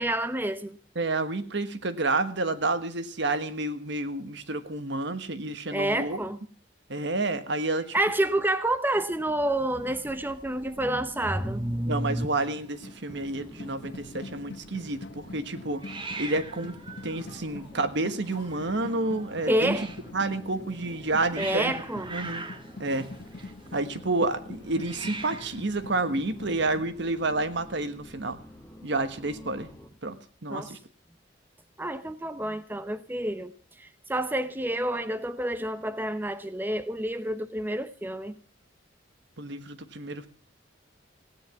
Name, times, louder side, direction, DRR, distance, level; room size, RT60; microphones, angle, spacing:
voice 1, 0.0-0.8 5.7-6.4 7.9-12.3 19.5-19.9 21.4-22.1 30.5-30.7 31.8-33.5 33.8-38.4, right 1 dB, 10° right, 0.7 m, -28 dB
voice 2, 0.9-6.2 6.9-8.0 11.9-15.8 16.2-16.8 17.0-19.8 20.1-21.7 22.1-22.5 22.8-23.1 23.7-28.4 28.8-29.7 30.0-30.2 30.4-30.8 39.4-40.3, right 2 dB, 65° right, 1.3 m, -29 dB
Hiss, 9.5-26.8, right 3 dB, 25° right, 1.5 m, -44 dB
sound 1, 12.3-26.9, left 2 dB, 65° left, 1.1 m, -45 dB
sound 2, 13.1-29.9, left 1 dB, 10° left, 1.7 m, -49 dB
16.5 x 10.0 x 7.0 m
head